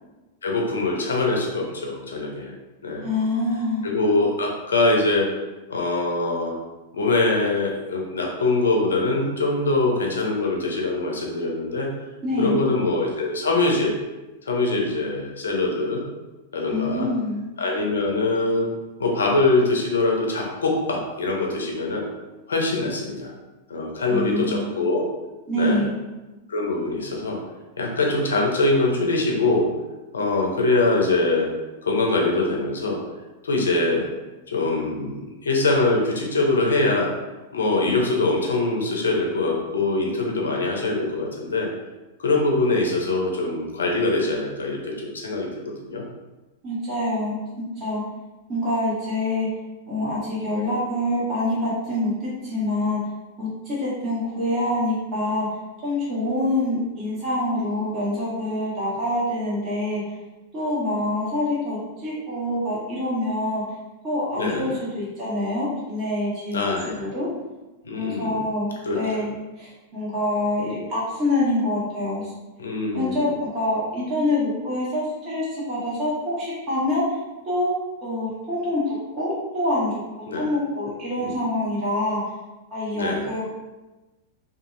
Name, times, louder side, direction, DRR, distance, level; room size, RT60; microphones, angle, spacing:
voice 1, 0.4-2.5 2.8-3.1 3.8-5.3 5.7-6.5 6.9-11.9 12.4-14.0 14.5-16.0 16.5-17.1 17.6-18.7 19.0-22.0 22.5-23.3 23.7-25.1 25.6-25.8 26.5-27.4 27.8-29.7 30.1-31.5 31.8-33.0 33.4-34.1 34.5-37.1 37.5-41.7 42.2-46.0 64.3-64.7 66.5-67.0 67.8-68.4 68.9-69.0 72.6-73.3 80.3-80.5 81.2-81.3 82.9-83.3, left 2 dB, 85° left, 0 dB, 0.6 m, -23 dB
voice 2, 3.0-3.8 12.2-12.7 16.7-17.4 24.0-24.6 25.5-25.9 46.6-47.4 47.8-48.0 48.5-49.5 49.9-53.0 53.4-55.5 55.8-60.1 60.5-63.6 64.0-67.3 67.9-69.3 69.6-72.3 72.9-77.2 77.5-77.7 78.0-79.9 80.3-82.2 82.7-83.4, left 1 dB, 35° right, -8 dB, 1.3 m, -26 dB
2.6 x 2.6 x 2.5 m, 1.1 s
hypercardioid pair, 105°, 0 cm